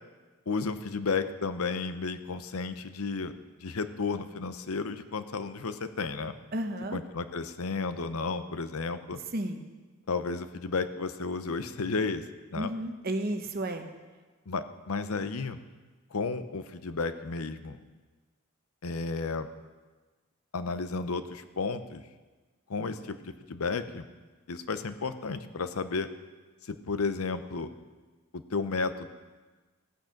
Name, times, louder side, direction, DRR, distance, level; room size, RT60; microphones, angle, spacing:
voice 1, 0.5-3.3 3.6-6.3 6.9-9.2 10.1-12.2 12.5-12.7 14.5-15.6 16.1-17.8 18.8-19.5 20.5-22.0 22.7-24.1 24.5-26.1 26.6-27.7 28.3-29.1, left 4 dB, 85° left, 11 dB, 0.7 m, -32 dB
voice 2, 6.5-7.0 9.3-9.6 12.6-13.9, right 1 dB, 45° right, 6 dB, 1.0 m, -32 dB
14.5 x 9.1 x 5.9 m, 1.3 s
head